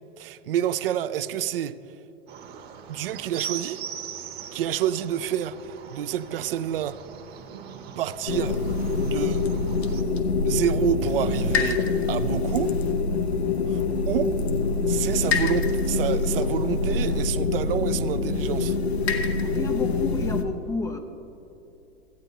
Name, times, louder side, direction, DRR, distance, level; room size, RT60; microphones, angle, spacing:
voice 1, 0.2-1.8 2.9-3.8 4.5-7.0 8.0-8.6 9.0-9.4 10.4-11.8 12.1-12.7 13.7-14.4 14.9-18.8, right 10 dB, 60° right, 0.4 m, -28 dB
sound 1, 2.3-10.0, right 7 dB, 30° right, 0.9 m, -40 dB
sound 2, 8.3-20.4, left 4 dB, 85° left, 0.8 m, -25 dB
voice 2, 19.4-21.0, left 3 dB, 10° left, 0.3 m, -31 dB
14.5 x 8.7 x 2.9 m
figure-of-eight pair, 95°, 31 cm